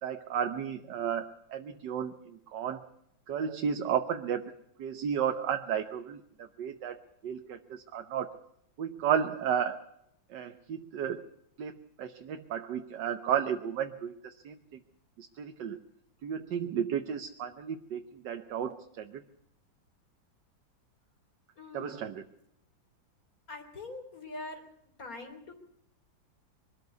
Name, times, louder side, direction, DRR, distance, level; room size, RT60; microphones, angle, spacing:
voice 1, 0.0-2.8 3.3-4.5 4.8-8.4 8.8-9.8 10.3-11.2 11.6-14.6 15.2-15.8 16.2-19.2 21.7-22.2, right 8 dB, 70° right, 6 dB, 1.6 m, -33 dB
voice 2, 21.6-22.1 23.5-24.6 25.0-25.5, left 2 dB, 45° left, 5 dB, 4.0 m, -43 dB
23.0 x 13.5 x 9.4 m, 0.76 s
omnidirectional pair, 2.1 m